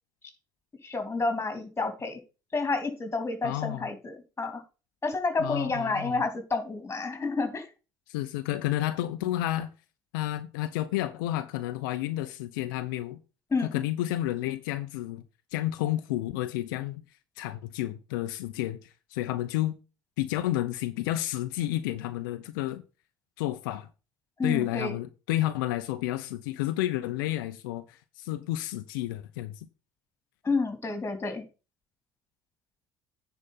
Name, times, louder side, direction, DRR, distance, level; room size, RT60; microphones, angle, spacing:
voice 1, 0.8-2.2 2.5-4.6 5.0-7.7 13.5-13.7 24.4-25.0 30.4-31.4, left 3 dB, 25° left, 3.3 m, -29 dB
voice 2, 3.4-3.9 5.4-6.2 8.1-9.7 10.1-13.2 13.6-15.2 15.5-17.0 17.4-19.8 20.2-22.8 23.4-23.9 24.4-29.7, left 15 dB, 80° left, 0.7 m, -31 dB
9.9 x 4.9 x 5.6 m
hypercardioid pair, 65°, 11 cm